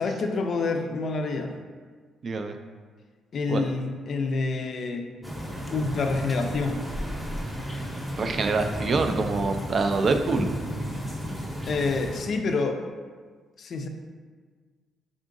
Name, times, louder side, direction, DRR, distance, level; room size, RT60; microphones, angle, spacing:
voice 1, 0.0-1.5 3.3-5.3 5.7-6.8 11.6-12.8 13.6-13.9, left 3 dB, 55° left, 4 dB, 0.4 m, -27 dB
voice 2, 2.2-2.6 3.5-3.7 8.2-10.5, right 3 dB, 45° right, 6 dB, 0.3 m, -25 dB
sound 1, 5.2-12.2, equal, 10° right, 0.7 m, -33 dB
3.6 x 3.6 x 2.5 m, 1.5 s
cardioid pair, 90°, 0 cm